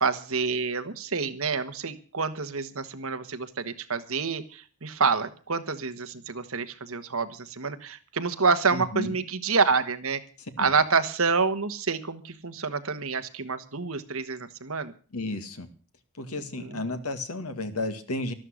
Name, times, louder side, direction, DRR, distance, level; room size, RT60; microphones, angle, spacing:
voice 1, 0.0-4.4 4.8-10.2 10.6-14.9 16.5-16.8, right 4 dB, 70° right, 9 dB, 1.4 m, -27 dB
voice 2, 8.7-9.2 10.6-10.7 15.1-15.7 16.2-18.3, left 2 dB, 85° left, 9 dB, 2.0 m, -32 dB
12.5 x 12.5 x 6.4 m, 0.39 s
head